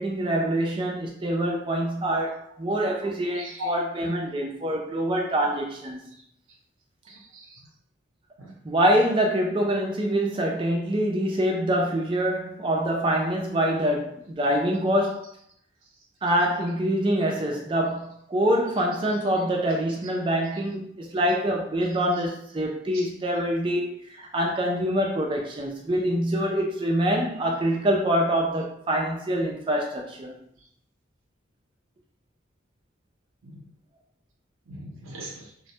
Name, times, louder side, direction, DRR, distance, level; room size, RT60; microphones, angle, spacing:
voice 1, 0.0-6.0 8.6-15.3 16.2-30.4, equal, 25° right, 1 dB, 0.4 m, -25 dB
voice 2, 3.3-3.7 7.1-7.6 8.4-8.5 20.5-20.6 33.4-33.7 34.7-35.5, left 1 dB, 90° right, -1 dB, 0.6 m, -39 dB
2.1 x 2.1 x 2.7 m, 0.68 s
head